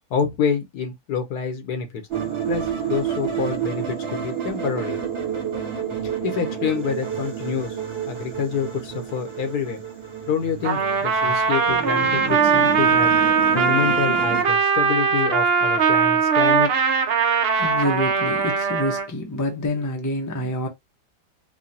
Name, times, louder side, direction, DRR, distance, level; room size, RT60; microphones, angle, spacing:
voice 1, 0.1-2.0 2.4-5.0 6.2-7.8 8.1-9.8 10.3-13.1 13.5-16.7, left 6 dB, 80° left, 1.5 m, -27 dB
sound 1, 2.1-14.4, right 8 dB, 40° right, 1.7 m, -30 dB
Trumpet, 10.6-19.1, right 5 dB, 60° right, 0.6 m, -20 dB
voice 2, 17.5-20.7, left 1 dB, 15° left, 0.6 m, -27 dB
4.9 x 2.3 x 2.7 m
omnidirectional pair, 1.7 m